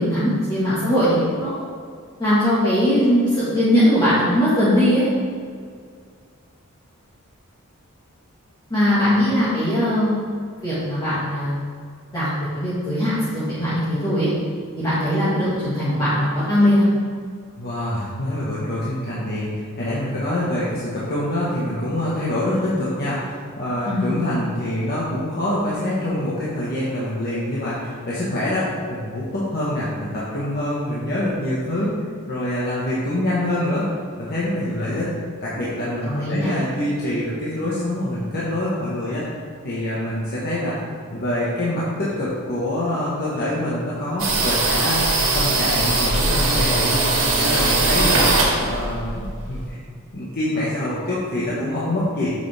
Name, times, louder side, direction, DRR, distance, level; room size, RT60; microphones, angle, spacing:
voice 1, 0.0-1.7 2.2-5.1 8.7-10.2 10.6-11.5 12.1-12.3 12.6-14.3 14.8-16.8 23.9-24.1 36.0-36.5, equal, 20° left, -12 dB, 2.0 m, -20 dB
voice 2, 17.6-31.9 32.3-33.9 34.2-35.1 35.4-39.3 39.6-40.7 41.1-47.1 47.4-48.3 48.5-49.8 50.1-52.3, left 1 dB, 45° left, -8 dB, 1.6 m, -25 dB
sound 1, 44.2-49.7, right 2 dB, 60° right, 1.8 m, -20 dB
9.0 x 6.9 x 3.6 m, 2.1 s
head